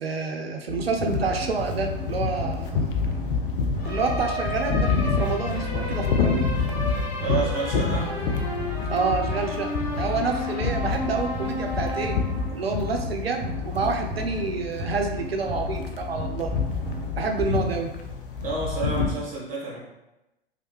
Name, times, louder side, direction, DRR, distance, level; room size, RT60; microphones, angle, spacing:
voice 1, 0.0-2.9 3.8-6.5 8.9-12.1 12.5-16.5 17.2-17.9, right 4 dB, 80° right, 3 dB, 0.5 m, -28 dB
sound 1, 0.7-18.3, left 2 dB, 25° left, 1.4 m, -32 dB
sound 2, 1.1-19.2, left 4 dB, 60° left, 0.5 m, -29 dB
voice 2, 7.2-8.3 18.4-19.8, right 3 dB, 30° right, -4 dB, 1.3 m, -30 dB
3.2 x 2.4 x 3.0 m, 0.94 s
figure-of-eight pair, 95°, 30 cm